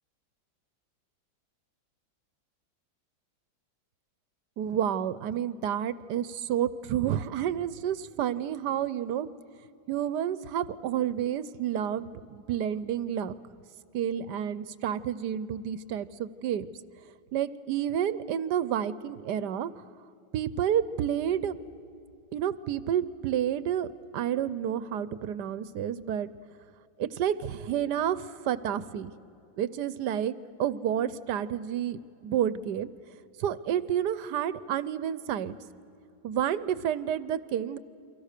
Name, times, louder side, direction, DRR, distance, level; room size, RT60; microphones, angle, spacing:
voice 1, 4.6-9.3 9.9-13.3 13.9-16.7 17.3-19.7 20.3-21.6 22.3-23.9 24.1-26.3 27.0-29.1 29.6-30.3 30.6-32.9 33.4-35.5 36.2-37.8, right 10 dB, 65° right, 16 dB, 1.2 m, -30 dB
29.5 x 24.0 x 6.7 m, 2.7 s
omnidirectional pair, 2.1 m